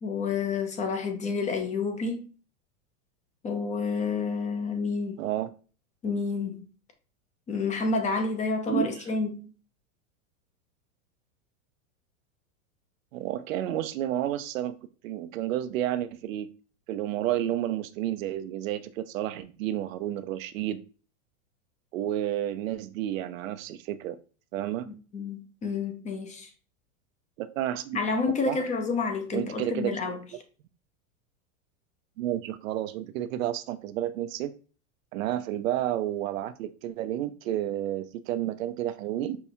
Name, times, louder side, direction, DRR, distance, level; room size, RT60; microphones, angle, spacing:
voice 1, 0.0-2.3 3.4-5.2 6.0-6.6 7.5-9.5 24.9-26.5 27.9-30.2, left 4 dB, 20° left, 0.6 m, -29 dB
voice 2, 5.2-5.5 8.7-9.0 13.1-14.8 15.0-16.5 16.9-20.8 21.9-24.2 24.5-24.9 27.4-28.0 28.5-28.6 29.3-30.0 32.2-34.5 35.1-39.4, right 12 dB, 75° right, 0.5 m, -31 dB
5.7 x 2.3 x 2.7 m
hypercardioid pair, 125°, 40 cm